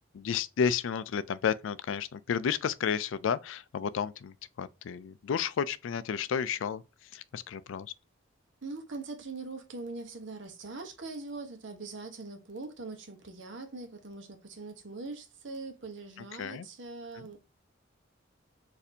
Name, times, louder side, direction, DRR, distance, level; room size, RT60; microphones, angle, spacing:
voice 1, 0.1-6.8 7.1-7.9 16.4-16.7 17.1-17.2, left 7 dB, 75° left, 0.3 m, -32 dB
voice 2, 8.6-17.4, right 3 dB, 65° right, 0.9 m, -42 dB
4.1 x 2.7 x 2.6 m
head